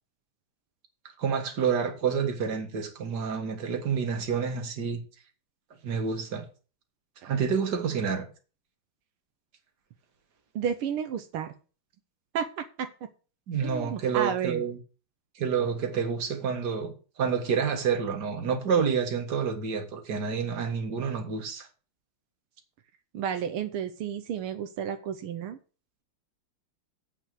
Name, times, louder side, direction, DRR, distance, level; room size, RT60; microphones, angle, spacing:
voice 1, 1.2-5.0 5.8-6.4 7.2-8.3 13.5-14.8 15.4-21.7, right 6 dB, 50° right, 2.3 m, -28 dB
voice 2, 10.6-11.5 12.3-12.9 13.6-14.6 23.1-25.6, right 8 dB, 85° right, 1.8 m, -32 dB
8.2 x 6.2 x 8.2 m
omnidirectional pair, 2.3 m